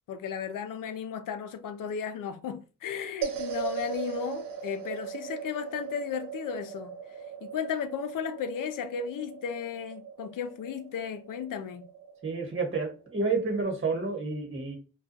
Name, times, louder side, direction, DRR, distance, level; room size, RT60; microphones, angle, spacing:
voice 1, 0.1-6.9 7.4-11.8, left 7 dB, 70° left, 0.5 m, -35 dB
sound 1, 3.2-13.6, right 7 dB, 75° right, 0.6 m, -39 dB
voice 2, 12.2-14.7, right 4 dB, 40° right, 1.2 m, -30 dB
2.3 x 2.3 x 2.6 m
cardioid pair, 50°, 33 cm